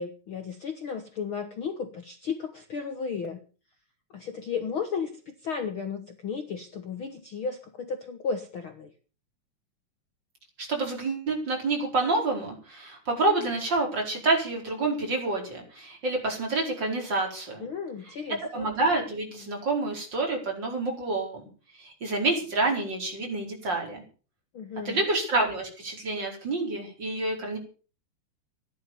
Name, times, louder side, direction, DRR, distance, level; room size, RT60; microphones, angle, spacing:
voice 1, 0.0-3.4 4.1-8.9 17.6-18.7 24.5-25.0, left 5 dB, 75° left, 7 dB, 1.2 m, -34 dB
voice 2, 10.6-17.7 18.4-21.4 21.8-24.0 24.8-27.6, right 2 dB, 30° right, 1 dB, 5.1 m, -28 dB
15.0 x 11.0 x 7.0 m, 0.38 s
omnidirectional pair, 4.5 m